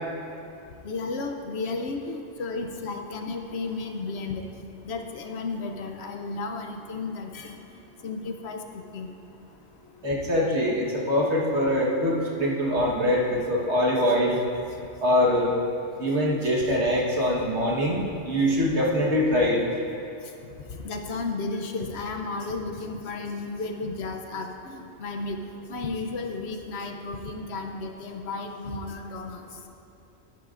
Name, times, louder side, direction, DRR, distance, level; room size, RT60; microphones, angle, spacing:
voice 1, 0.8-4.4 4.8-7.6 8.0-8.6 8.9-9.1 20.8-25.4 25.7-29.4, left 3 dB, 65° left, 4 dB, 0.9 m, -33 dB
voice 2, 10.0-14.4 15.0-15.5 16.0-19.6, left 1 dB, 65° right, -3 dB, 1.7 m, -23 dB
12.0 x 11.0 x 2.5 m, 2.6 s
omnidirectional pair, 1.3 m